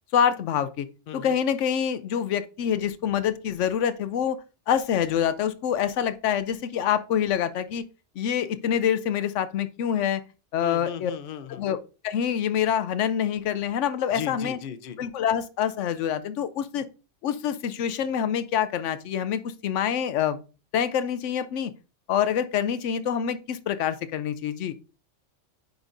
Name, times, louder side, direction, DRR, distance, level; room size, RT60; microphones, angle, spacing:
voice 1, 0.1-0.9 1.1-4.4 4.7-7.8 8.2-10.2 10.5-11.1 11.5-11.8 12.0-14.6 15.0-16.9 17.2-20.4 20.7-21.7 22.1-24.7, left 9 dB, 85° left, 13 dB, 0.9 m, -26 dB
voice 2, 10.6-11.7 14.1-15.0, left 8 dB, 55° left, 11 dB, 0.8 m, -36 dB
9.6 x 5.3 x 2.6 m, 0.33 s
omnidirectional pair, 1.2 m